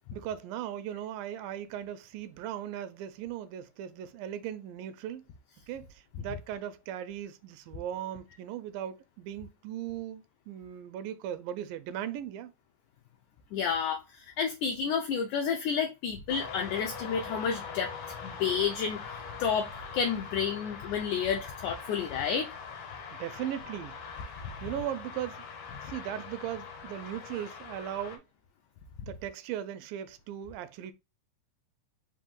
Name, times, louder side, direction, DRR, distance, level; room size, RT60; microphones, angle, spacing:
voice 1, 0.1-5.3 5.7-12.5 23.2-24.0 24.6-25.4 25.8-28.2 29.0-30.9, right 10 dB, 85° right, 2.2 m, -38 dB
voice 2, 13.5-17.9 18.2-22.5, left 6 dB, 80° left, 1.8 m, -30 dB
sound 1, 16.3-28.2, left 5 dB, 65° left, 2.1 m, -42 dB
5.3 x 2.6 x 3.6 m
omnidirectional pair, 4.0 m